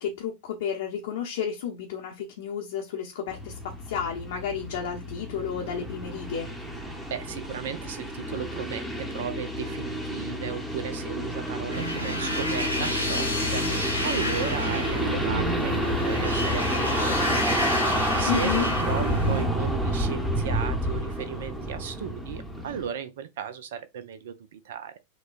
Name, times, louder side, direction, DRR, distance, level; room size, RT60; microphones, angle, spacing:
voice 1, 0.0-6.5 18.3-18.7, left 8 dB, 55° left, 0.7 m, -32 dB
sound 1, 3.3-22.9, equal, 5° right, 0.9 m, -29 dB
voice 2, 7.1-25.0, right 8 dB, 55° right, 0.5 m, -36 dB
sound 2, 11.7-19.4, equal, 85° right, 1.0 m, -30 dB
6.2 x 2.2 x 2.5 m
figure-of-eight pair, 90°, 0 cm